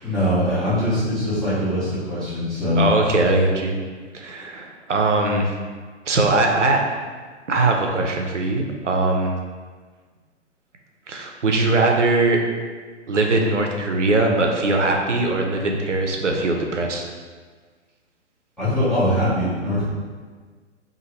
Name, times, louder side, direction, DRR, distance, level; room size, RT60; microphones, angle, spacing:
voice 1, 0.0-2.9 18.6-19.8, left 1 dB, ahead, -14 dB, 0.6 m, -22 dB
voice 2, 2.8-3.8 4.1-5.5 6.1-6.8 7.5-9.3 11.1-12.4 13.1-17.0, right 2 dB, 85° right, 1 dB, 0.5 m, -20 dB
2.7 x 2.5 x 2.9 m, 1.5 s
figure-of-eight pair, 115°, 35 cm